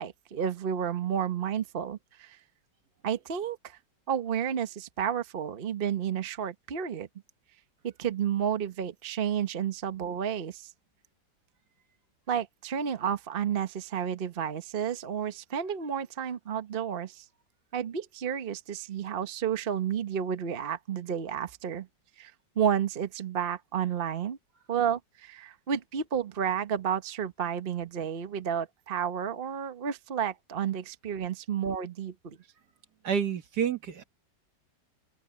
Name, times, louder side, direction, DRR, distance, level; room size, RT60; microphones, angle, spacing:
voice 1, 0.0-2.4 3.0-3.8 4.1-7.1 7.8-10.7 12.3-17.2 17.7-21.9 22.2-24.4 24.7-32.4, right 8 dB, 40° right, 1.0 m, -31 dB
voice 2, 33.0-34.0, right 7 dB, 65° right, 1.9 m, -29 dB
open air
omnidirectional pair, 1.9 m